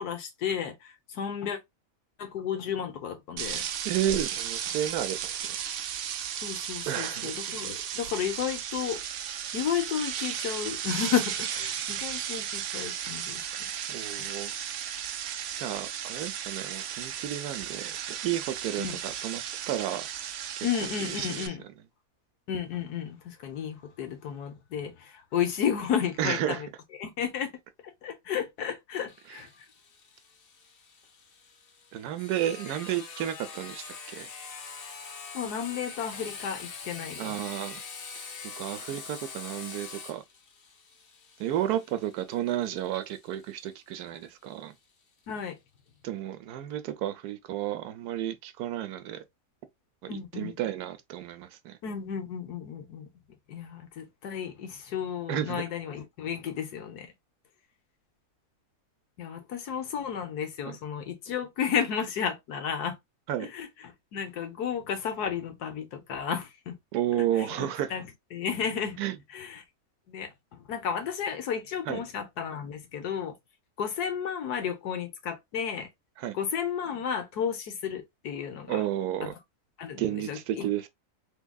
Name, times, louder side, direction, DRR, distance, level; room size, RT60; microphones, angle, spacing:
voice 1, 0.0-1.6 2.2-3.7 6.4-9.0 9.5-13.4 14.2-14.3 18.8-19.0 20.6-21.6 22.5-26.7 27.0-27.5 28.0-29.5 35.3-37.3 45.3-45.5 50.1-50.6 51.8-53.1 53.5-57.1 59.2-63.0 63.4-66.8 67.4-68.0 68.3-69.0 69.3-69.6 70.1-73.3 73.8-75.9 76.3-78.8 79.2-79.3 79.8-80.7, left 8 dB, 90° left, 1.4 m, -33 dB
sound 1, 3.4-21.5, right 9 dB, 65° right, 0.7 m, -35 dB
voice 2, 3.8-5.6 6.9-7.4 13.9-14.5 15.6-18.0 18.2-20.1 20.6-20.7 21.1-21.3 26.2-26.6 29.3-29.4 31.9-34.3 37.2-37.8 38.6-40.2 41.4-44.7 46.0-49.2 50.0-51.8 55.3-55.6 60.6-60.8 63.3-63.5 66.9-67.9 69.0-69.2 71.9-72.0 76.2-76.4 78.7-79.3 80.0-80.9, right 11 dB, 85° right, 1.2 m, -32 dB
Sawing, 29.1-44.5, left 5 dB, 50° left, 0.8 m, -44 dB
3.6 x 3.4 x 2.3 m
omnidirectional pair, 1.6 m